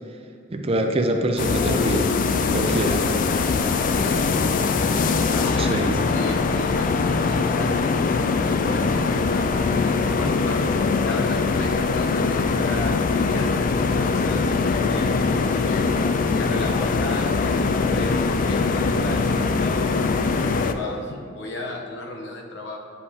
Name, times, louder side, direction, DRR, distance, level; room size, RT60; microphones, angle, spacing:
voice 1, 0.5-2.1 2.5-3.0 5.6-6.0, right 1 dB, 30° right, 4 dB, 0.5 m, -24 dB
sound 1, 1.4-20.7, left 4 dB, 45° left, 0.3 m, -22 dB
voice 2, 5.2-10.7 11.0-15.1 15.6-22.8, left 2 dB, 65° left, 0 dB, 0.9 m, -35 dB
9.7 x 5.4 x 2.8 m, 2.3 s
head